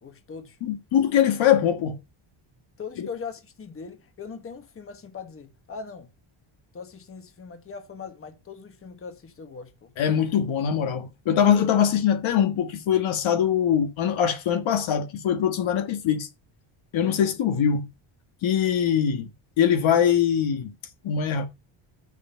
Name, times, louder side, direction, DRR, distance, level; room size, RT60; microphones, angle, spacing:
voice 1, 0.0-0.6 1.4-1.5 2.8-6.1 6.7-10.3 16.9-17.1, left 5 dB, 25° left, 1.3 m, -40 dB
voice 2, 0.6-2.0 3.0-3.1 10.0-16.3 16.9-17.9 18.4-19.3 19.6-20.7 21.0-21.5, left 8 dB, 65° left, 1.5 m, -22 dB
7.1 x 6.6 x 5.5 m
cardioid pair, 145°, 49 cm